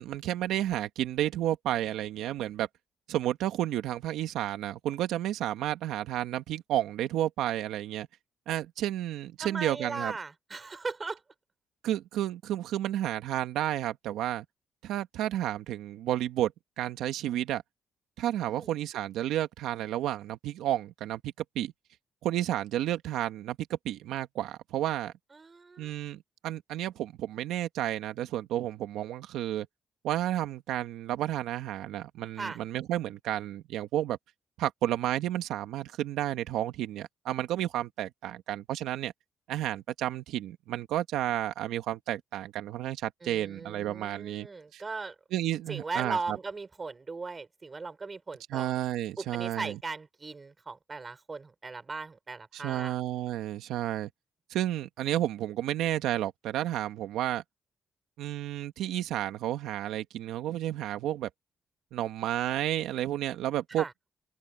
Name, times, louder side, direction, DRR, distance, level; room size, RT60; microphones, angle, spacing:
voice 1, 0.0-2.7 3.1-8.1 8.5-10.1 11.8-14.4 14.8-16.5 16.8-17.6 18.2-21.7 22.2-25.1 25.8-29.7 30.0-34.2 34.6-39.1 39.5-44.5 44.7-44.8 45.3-46.4 48.5-49.8 52.5-54.1 54.5-57.4 58.2-61.3 61.9-63.8, right 12 dB, 90° right, 1.7 m, -31 dB
voice 2, 9.4-11.2 18.5-18.7 25.3-25.9 32.4-32.6 43.2-45.1 45.7-48.7 49.2-52.9 63.8-63.9, right 4 dB, 30° right, 4.4 m, -38 dB
open air
cardioid pair, 90°, 0 cm